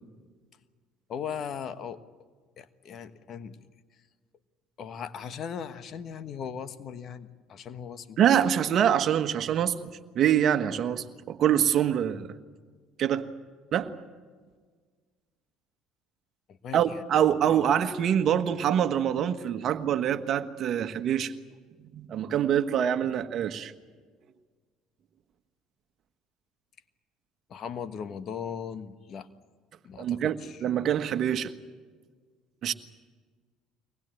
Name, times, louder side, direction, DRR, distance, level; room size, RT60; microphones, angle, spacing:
voice 1, 1.1-2.0 2.6-3.6 4.8-8.2 16.5-17.0 17.5-17.6 27.5-29.3 29.8-30.6, left 7 dB, 50° left, 1.4 m, -38 dB
voice 2, 8.2-12.3 13.0-13.3 13.7-13.9 16.7-21.3 21.9-23.7 30.0-31.5 32.6-32.7, right 9 dB, 55° right, 1.4 m, -25 dB
24.0 x 19.5 x 9.1 m
hypercardioid pair, 70°, 0 cm